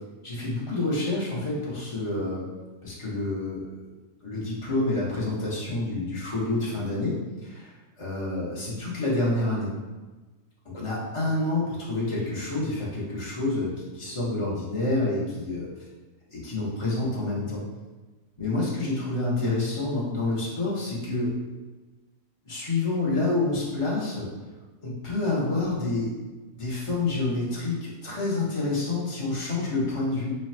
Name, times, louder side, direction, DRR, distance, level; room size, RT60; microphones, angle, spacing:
voice 1, 0.2-2.4 2.8-3.7 4.2-9.7 10.7-15.7 16.3-17.6 18.4-21.3 22.5-24.3 24.8-26.1 26.6-30.4, left 2 dB, 25° left, -6 dB, 0.7 m, -28 dB
3.2 x 2.3 x 4.3 m, 1.2 s
omnidirectional pair, 1.6 m